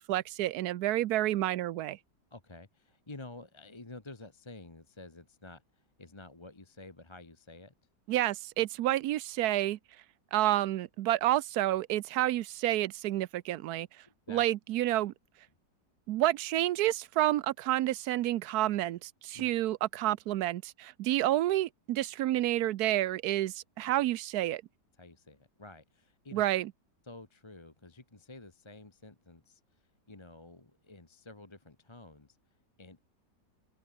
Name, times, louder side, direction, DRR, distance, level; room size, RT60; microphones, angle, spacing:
voice 1, 0.0-2.0 8.1-9.8 10.3-13.9 14.3-15.1 16.1-24.6 26.3-26.7, right 14 dB, 70° right, 1.0 m, -29 dB
voice 2, 2.3-7.7 14.1-14.4 19.3-19.5 25.0-26.4 27.0-32.4 32.8-33.0, left 2 dB, 15° left, 1.2 m, -50 dB
open air
omnidirectional pair, 1.9 m